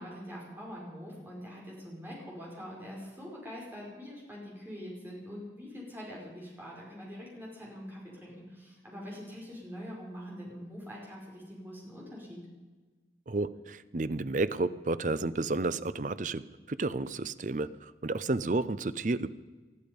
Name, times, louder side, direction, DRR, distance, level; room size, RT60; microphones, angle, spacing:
voice 1, 0.0-12.5, equal, 10° right, -4 dB, 5.1 m, -44 dB
voice 2, 13.3-19.3, right 2 dB, 45° right, 14 dB, 0.6 m, -31 dB
20.0 x 12.5 x 5.3 m, 1.3 s
head